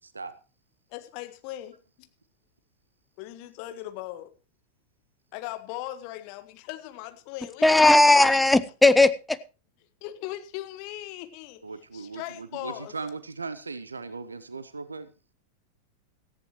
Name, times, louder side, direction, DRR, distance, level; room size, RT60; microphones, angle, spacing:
voice 1, 0.0-0.3 11.6-15.1, right 4 dB, 75° right, 0.8 m, -38 dB
voice 2, 0.9-2.1 3.2-4.3 5.3-8.3 10.0-11.6 11.9-12.9, left 14 dB, 45° left, 1.5 m, -39 dB
voice 3, 7.6-9.4, left 2 dB, 5° left, 0.6 m, -17 dB
18.0 x 14.5 x 3.1 m
figure-of-eight pair, 90°, 0 cm